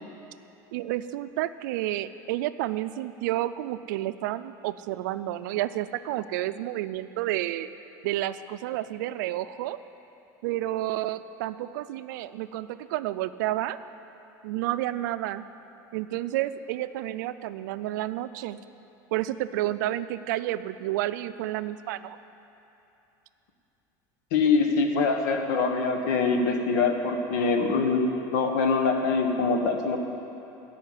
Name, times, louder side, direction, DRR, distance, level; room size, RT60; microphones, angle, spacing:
voice 1, 0.7-7.7 8.0-9.8 10.4-13.8 14.4-15.5 15.9-18.6 19.1-22.2, right 14 dB, 85° right, 13 dB, 0.4 m, -30 dB
voice 2, 24.3-30.0, left 4 dB, 75° left, 4 dB, 1.4 m, -24 dB
13.0 x 5.7 x 9.0 m, 2.9 s
cardioid pair, 170°, 10 cm